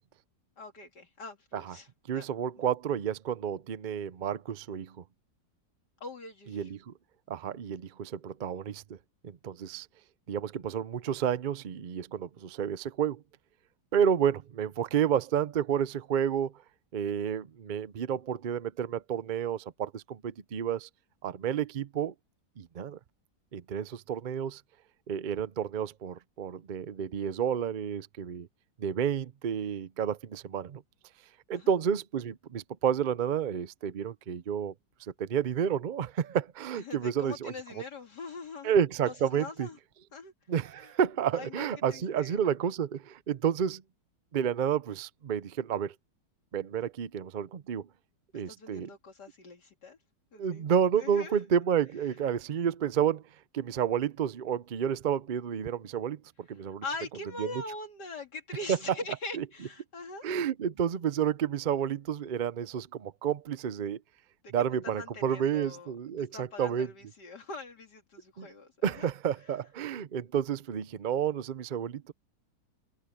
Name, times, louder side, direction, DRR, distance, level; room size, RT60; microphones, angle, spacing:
voice 1, 0.6-2.3 6.0-6.7 31.5-31.7 36.7-38.7 39.0-39.8 40.1-40.3 40.8-40.9 41.3-42.4 48.5-50.0 50.3-50.7 51.0-51.4 56.6-60.3 64.4-64.5 64.8-69.1, left 3 dB, 70° left, 2.8 m, -43 dB
voice 2, 2.1-5.0 6.5-6.9 7.3-9.0 9.2-9.9 10.3-13.2 13.9-16.5 16.9-20.9 21.2-22.1 22.6-23.0 23.5-24.6 25.1-28.5 28.8-30.8 31.5-34.7 35.2-37.5 38.6-39.7 40.5-43.8 44.3-45.9 46.5-47.9 48.3-48.9 50.4-53.2 53.5-56.8 57.4-57.5 58.7-58.8 59.4-59.5 60.2-64.0 64.5-66.9 68.4-68.5 68.8-72.1, right 8 dB, 85° right, 0.4 m, -30 dB
omnidirectional pair, 1.9 m